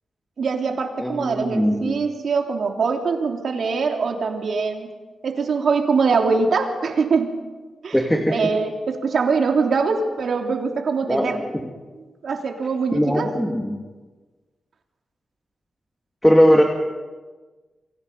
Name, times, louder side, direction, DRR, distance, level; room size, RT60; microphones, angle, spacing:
voice 1, 0.4-4.9 5.2-7.3 7.8-8.0 8.3-11.4 12.2-13.3, right 4 dB, 65° right, 3 dB, 3.2 m, -23 dB
voice 2, 1.0-1.9 7.9-8.4 11.1-11.4 12.9-13.8 16.2-16.6, equal, 5° left, 1 dB, 2.3 m, -19 dB
29.5 x 24.0 x 5.5 m, 1.3 s
wide cardioid pair, 120°, 0 cm